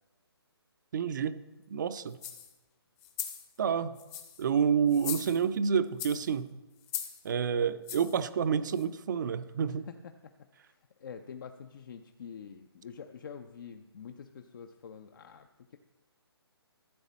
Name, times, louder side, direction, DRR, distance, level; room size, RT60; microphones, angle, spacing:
voice 1, 0.9-1.4 1.7-2.2 3.6-4.0 4.4-6.5 7.2-9.8, right 7 dB, 45° right, 13 dB, 0.6 m, -29 dB
sound 1, 2.1-2.5 3.0-3.5 4.0-4.4 4.9-5.6 6.0-6.3 6.8-7.2 7.9-8.2 8.8-8.9, left 10 dB, 15° left, 0.7 m, -39 dB
voice 2, 9.7-15.8, left 7 dB, 50° left, 7 dB, 0.6 m, -47 dB
14.0 x 7.2 x 4.2 m, 1.1 s
hypercardioid pair, 150°, 14 cm